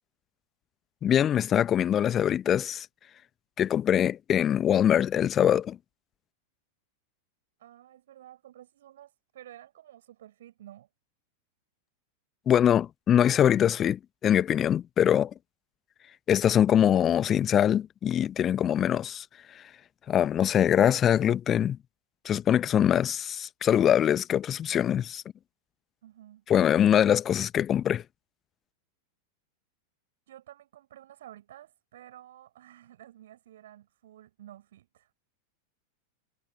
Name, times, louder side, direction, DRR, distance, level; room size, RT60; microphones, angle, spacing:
voice 1, 1.0-2.9 3.6-5.8 12.5-15.3 16.3-19.2 20.1-21.8 22.2-25.2 26.5-28.0, left 10 dB, 25° left, 1.0 m, -23 dB
voice 2, 7.6-10.9 26.0-26.5 30.3-35.1, right 12 dB, 60° right, 7.0 m, -51 dB
figure-of-eight pair, 90°, 0 cm